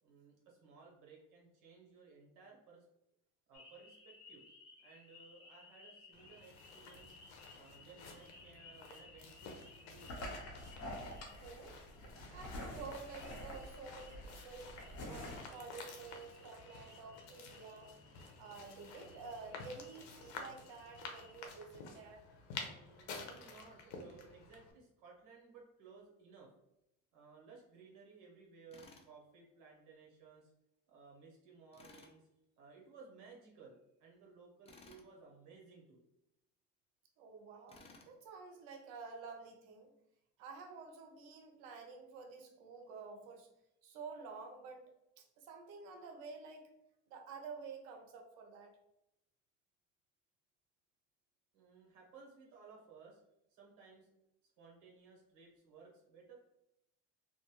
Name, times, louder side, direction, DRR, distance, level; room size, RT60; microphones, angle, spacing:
voice 1, 0.0-2.9 3.5-4.4 4.8-7.2 7.5-9.5 9.8-10.1 12.0-12.4 22.5-26.5 27.1-30.5 30.9-32.3 32.6-36.0 51.5-53.2 53.5-54.1 54.6-56.3, right 4 dB, 65° right, -2 dB, 1.2 m, -59 dB
sound 1, 3.5-21.5, left 1 dB, 45° left, 0.9 m, -52 dB
sound 2, 6.1-24.7, left 4 dB, 90° left, 0.7 m, -52 dB
voice 2, 11.3-11.8 12.3-17.9 18.4-22.2 37.2-39.9 40.4-43.5 43.8-46.7 47.1-48.7, right 4 dB, 85° right, 4 dB, 0.7 m, -50 dB
Tools, 28.7-29.1 31.7-32.2 34.7-35.1 37.7-38.1, left 3 dB, 20° left, 0.4 m, -58 dB
2.5 x 2.2 x 2.9 m, 0.84 s
cardioid pair, 110°, 34 cm